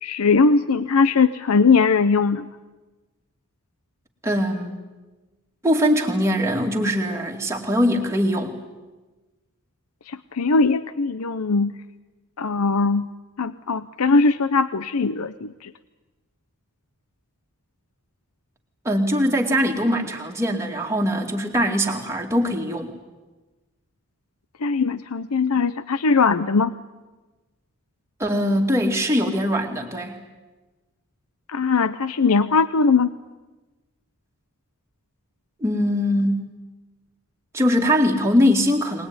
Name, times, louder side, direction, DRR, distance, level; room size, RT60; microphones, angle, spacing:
voice 1, 0.0-2.5 10.1-11.7 12.4-13.1 13.4-15.7 24.6-26.7 31.5-33.1, left 4 dB, 85° left, 13 dB, 0.7 m, -20 dB
voice 2, 4.2-4.8 5.6-8.6 18.8-22.9 28.2-30.2 35.6-36.5 37.5-39.1, equal, 10° right, 1 dB, 2.4 m, -22 dB
23.0 x 20.0 x 9.6 m, 1.2 s
head